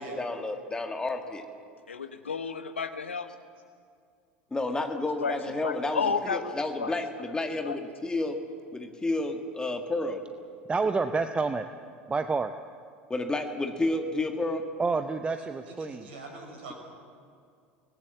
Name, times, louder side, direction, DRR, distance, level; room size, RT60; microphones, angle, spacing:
voice 1, 0.0-1.4 4.5-8.4 8.7-10.2 13.1-14.7, left 2 dB, 10° left, 5 dB, 2.0 m, -31 dB
voice 2, 1.9-3.3 4.6-4.7 5.2-5.4 5.6-6.5 6.8-6.9 7.6-7.8, left 5 dB, 75° left, 10 dB, 1.1 m, -31 dB
voice 3, 10.7-11.7 12.1-12.5 14.8-16.0, right 4 dB, 15° right, 9 dB, 0.8 m, -28 dB
voice 4, 15.4-16.7, right 2 dB, 65° right, 3 dB, 5.6 m, -44 dB
25.0 x 19.0 x 7.2 m, 2.3 s
figure-of-eight pair, 75°, 7 cm